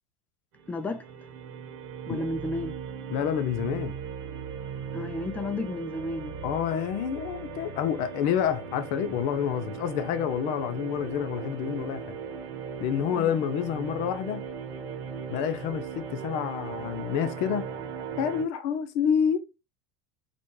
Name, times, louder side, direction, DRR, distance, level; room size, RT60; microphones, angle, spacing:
sound 1, 0.5-18.4, right 6 dB, 65° right, 1.1 m, -38 dB
voice 1, 0.7-1.1 2.0-2.8 4.9-6.4 13.2-13.3, left 2 dB, 10° left, 0.4 m, -32 dB
voice 2, 3.1-3.9 6.4-12.2 12.8-14.4 15.3-17.7 18.2-19.4, left 8 dB, 60° left, 0.5 m, -28 dB
4.1 x 2.3 x 3.1 m
supercardioid pair, 100°, 14 cm